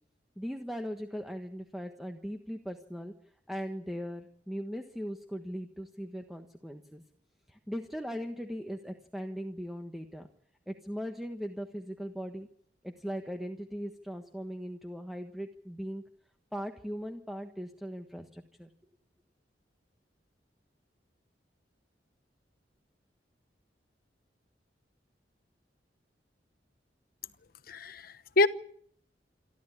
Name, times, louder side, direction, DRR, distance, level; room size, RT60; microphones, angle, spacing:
voice 1, 0.4-3.1 3.5-7.0 7.5-10.3 10.7-12.5 12.8-16.0 16.5-18.7, equal, ahead, 1.4 m, -39 dB
voice 2, 27.7-28.5, left 2 dB, 55° left, 1.0 m, -26 dB
27.5 x 12.5 x 9.8 m
head